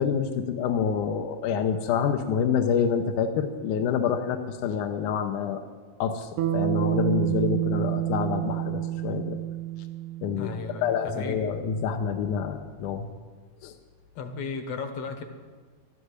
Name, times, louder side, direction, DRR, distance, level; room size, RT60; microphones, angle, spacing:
voice 1, 0.0-5.6 6.0-9.4 10.2-13.1 13.6-13.7, left 7 dB, 75° left, 6 dB, 2.1 m, -27 dB
Bass guitar, 6.4-10.8, right 14 dB, 75° right, 1.9 m, -28 dB
voice 2, 10.4-11.4 14.2-15.2, left 4 dB, 60° left, 7 dB, 1.9 m, -35 dB
13.0 x 10.0 x 9.6 m, 1.5 s
omnidirectional pair, 4.0 m